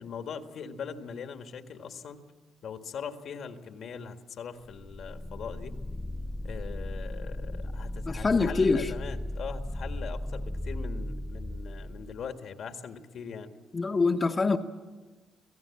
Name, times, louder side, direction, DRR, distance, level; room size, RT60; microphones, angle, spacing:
voice 1, 0.0-2.2 2.6-5.8 6.4-13.5, left 6 dB, 65° left, 1.8 m, -41 dB
sound 1, 4.8-12.3, left 1 dB, 10° left, 0.6 m, -36 dB
voice 2, 8.1-8.9 13.7-14.6, left 4 dB, 30° left, 1.1 m, -25 dB
26.0 x 17.0 x 8.5 m
cardioid pair, 90°, 0 cm